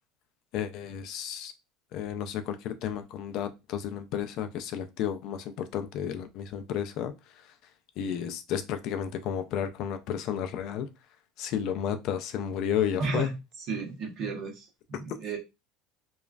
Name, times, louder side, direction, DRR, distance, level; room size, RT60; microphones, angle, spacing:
voice 1, 0.5-1.5 1.9-7.6 8.0-10.9 11.4-13.3, left 9 dB, 55° left, 8 dB, 0.4 m, -32 dB
voice 2, 13.0-13.3 13.7-15.4, right 4 dB, 50° right, 1 dB, 1.0 m, -33 dB
3.0 x 2.3 x 2.4 m, 0.24 s
cardioid pair, 145°, 0 cm